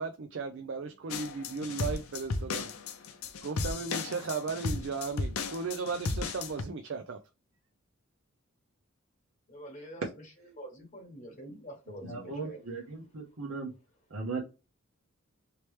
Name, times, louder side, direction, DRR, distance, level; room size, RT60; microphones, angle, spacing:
voice 1, 0.0-2.7 3.4-7.2, right 4 dB, 60° right, 0.4 m, -36 dB
sound 1, 1.1-6.6, left 3 dB, 85° left, 0.6 m, -35 dB
voice 2, 9.5-10.0 10.5-12.6, right 1 dB, 35° left, 1.0 m, -45 dB
voice 3, 11.9-13.7 14.1-14.4, right 4 dB, 75° right, 0.9 m, -38 dB
3.2 x 2.9 x 3.1 m
head